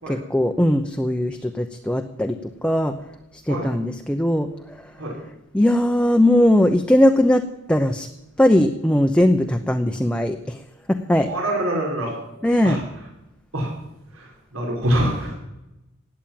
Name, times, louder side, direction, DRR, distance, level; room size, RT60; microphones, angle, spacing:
voice 1, 0.1-2.9 3.5-4.8 5.5-8.1 8.4-10.6 10.9-11.3 12.4-12.8, left 1 dB, 5° left, 5 dB, 0.8 m, -19 dB
voice 2, 11.2-12.1 12.6-12.8 13.5-13.7 14.2-14.3 14.5-15.3, right 1 dB, 85° right, -2 dB, 5.3 m, -24 dB
17.5 x 9.1 x 9.0 m, 0.92 s
head